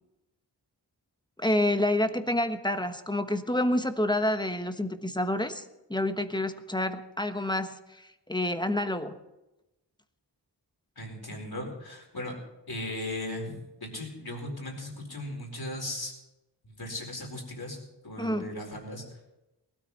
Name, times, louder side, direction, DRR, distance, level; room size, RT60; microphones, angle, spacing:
voice 1, 1.4-5.6 5.9-7.8 8.3-9.2 18.2-18.5, left 1 dB, 10° left, 8 dB, 1.2 m, -28 dB
voice 2, 11.0-12.3 12.7-16.1 16.6-17.8 18.0-19.0, left 1 dB, 60° left, 1 dB, 4.5 m, -37 dB
19.0 x 13.0 x 4.2 m, 0.97 s
wide cardioid pair, 40°, 42 cm